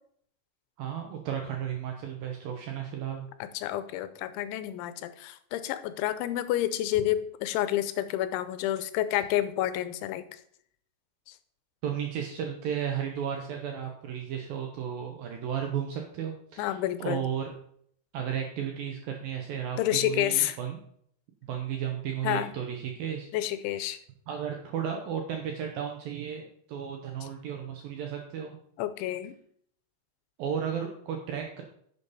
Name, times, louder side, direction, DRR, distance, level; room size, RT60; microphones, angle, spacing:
voice 1, 0.8-3.3 11.8-17.5 18.1-20.8 21.4-23.3 24.3-28.6 30.4-31.6, right 8 dB, 75° right, 3 dB, 2.1 m, -34 dB
voice 2, 3.5-10.3 16.6-17.2 19.8-20.6 22.2-22.5 23.3-24.0 28.8-29.4, left 13 dB, 90° left, 12 dB, 3.1 m, -29 dB
10.5 x 7.1 x 4.1 m, 0.64 s
omnidirectional pair, 5.3 m